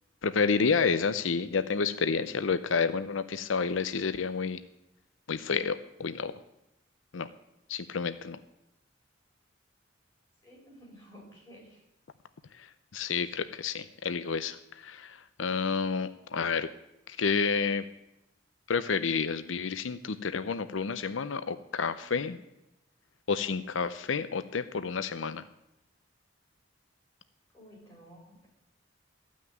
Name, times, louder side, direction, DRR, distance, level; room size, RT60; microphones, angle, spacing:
voice 1, 0.2-4.6 5.3-6.3 7.1-7.3 7.7-8.4 12.6-12.7 12.9-16.7 17.1-17.8 18.7-22.4 23.3-25.4, left 5 dB, 90° left, 13 dB, 0.6 m, -30 dB
voice 2, 10.4-11.8 27.5-28.5, equal, 15° left, -4 dB, 6.3 m, -52 dB
14.5 x 6.3 x 9.3 m, 0.88 s
head